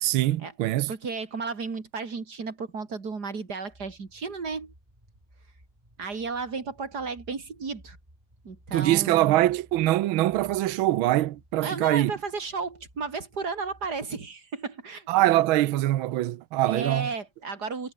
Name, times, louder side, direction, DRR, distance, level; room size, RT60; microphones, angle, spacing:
voice 1, 0.0-0.9 8.7-12.1 15.1-17.1, right 15 dB, 80° right, 1.6 m, -23 dB
voice 2, 0.9-4.7 6.0-8.0 8.4-9.4 11.6-15.1 16.7-17.9, right 4 dB, 50° right, 3.3 m, -33 dB
sound 1, 3.6-14.1, right 1 dB, 15° right, 6.4 m, -57 dB
omnidirectional pair, 2.3 m